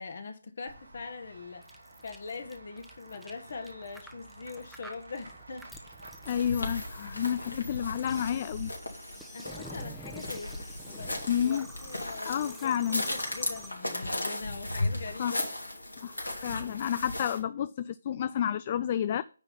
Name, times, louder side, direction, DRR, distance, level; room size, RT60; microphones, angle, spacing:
voice 1, 0.0-1.6 2.0-5.7 9.3-15.5, left 4 dB, 55° left, 1.4 m, -42 dB
Run / Walk footsteps / Bell, 0.7-7.4, right 2 dB, 80° right, 4.4 m, -51 dB
sound 1, 1.6-14.2, equal, ahead, 0.9 m, -49 dB
sound 2, 6.3-17.4, left 1 dB, 85° left, 2.9 m, -36 dB
voice 2, 6.3-8.7 11.3-11.7 12.2-13.0 15.2-15.4 16.0-19.2, left 9 dB, 35° left, 0.3 m, -30 dB
9.6 x 3.9 x 7.0 m
figure-of-eight pair, 150°, 0 cm